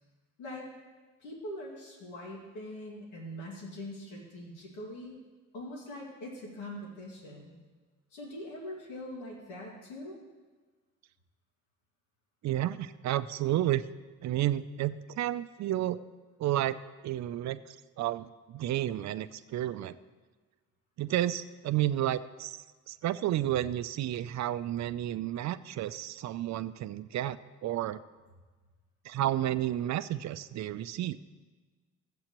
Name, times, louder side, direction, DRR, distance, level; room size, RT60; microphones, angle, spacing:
voice 1, 1.2-5.2 5.5-7.5 8.1-10.2, left 1 dB, 85° left, -2 dB, 2.2 m, -42 dB
voice 2, 12.4-13.8 14.2-16.0 16.4-16.8 17.0-20.0 21.0-22.6 22.9-28.0 29.0-31.2, right 13 dB, 65° right, 13 dB, 0.5 m, -31 dB
16.0 x 7.7 x 3.0 m, 1.3 s
cardioid pair, 90°, 30 cm